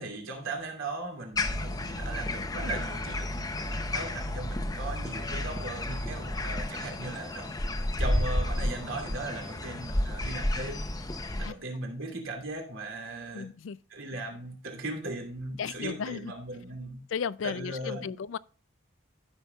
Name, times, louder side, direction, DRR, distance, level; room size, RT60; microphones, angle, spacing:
voice 1, 0.0-7.5 8.0-10.8 11.4-13.5 13.9-17.1 17.4-18.2, right 2 dB, 90° right, 2.5 m, -38 dB
sound 1, 1.3-6.6, equal, 65° right, 1.4 m, -38 dB
sound 2, 1.4-11.5, left 1 dB, 20° left, 0.7 m, -32 dB
voice 2, 13.3-13.8 15.6-16.3 17.1-18.4, left 6 dB, 70° left, 0.4 m, -34 dB
14.5 x 6.0 x 2.3 m
head